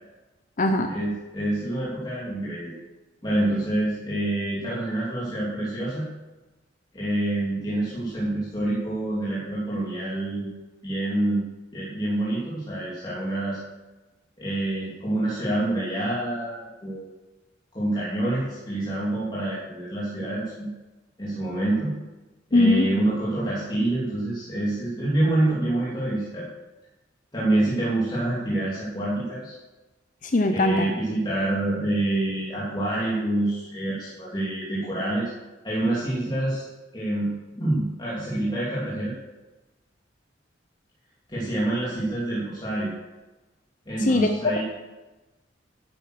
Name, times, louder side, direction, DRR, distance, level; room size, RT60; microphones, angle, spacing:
voice 1, 0.9-2.7 3.2-6.1 6.9-10.5 10.8-11.4 11.7-13.6 14.4-17.1 17.7-20.7 21.2-21.9 22.5-26.4 27.3-29.5 30.5-35.3 35.6-36.6 36.9-37.3 37.6-39.1 41.3-42.9 43.9-44.6, right 1 dB, 25° left, -8 dB, 2.9 m, -27 dB
voice 2, 22.5-22.9 30.3-30.9 44.0-44.3, left 2 dB, 45° left, 6 dB, 0.7 m, -20 dB
11.5 x 8.5 x 6.4 m, 1.1 s
head